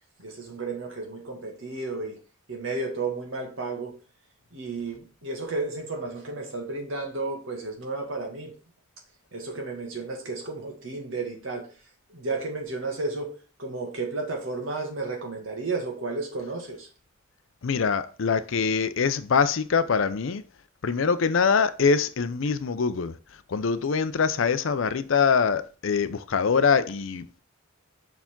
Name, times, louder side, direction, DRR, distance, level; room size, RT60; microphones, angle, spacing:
voice 1, 0.2-2.2 2.5-4.0 4.5-8.5 9.3-11.7 12.1-16.9, right 3 dB, 70° right, 2.0 m, -33 dB
voice 2, 17.6-20.4 20.8-23.2 23.5-27.4, left 5 dB, 70° left, 0.5 m, -24 dB
5.8 x 4.7 x 3.7 m
head